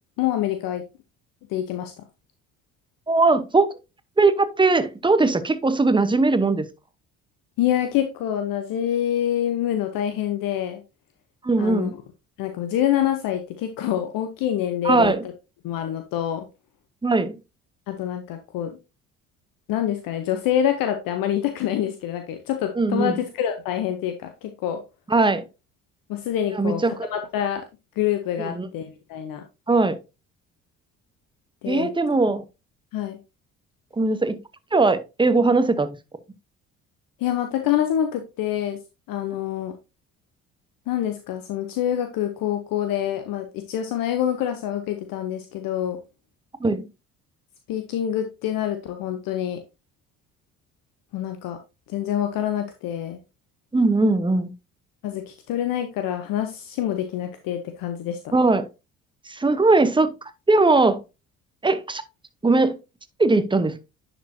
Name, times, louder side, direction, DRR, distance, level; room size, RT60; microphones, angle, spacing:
voice 1, 0.2-0.8 1.5-1.9 7.6-10.8 11.6-11.9 12.4-15.1 15.6-16.5 17.9-18.8 19.7-24.8 26.1-27.6 28.0-29.4 31.6-31.9 32.9-33.2 37.2-38.8 39.1-39.7 40.9-46.0 47.7-49.6 51.1-51.6 51.9-53.2 55.0-58.3, left 10 dB, 60° left, 0.9 m, -26 dB
voice 2, 3.1-3.7 4.2-6.7 11.4-11.9 14.8-15.2 17.0-17.3 22.8-23.2 25.1-25.4 26.5-27.1 28.4-28.7 29.7-30.0 31.7-32.4 33.9-34.4 34.7-36.0 46.6-46.8 53.7-54.5 58.3-58.7 59.2-61.0 61.6-62.0 62.4-62.8 63.2-63.8, right 3 dB, 15° right, 0.9 m, -20 dB
10.0 x 4.5 x 2.7 m
hypercardioid pair, 55°, 38 cm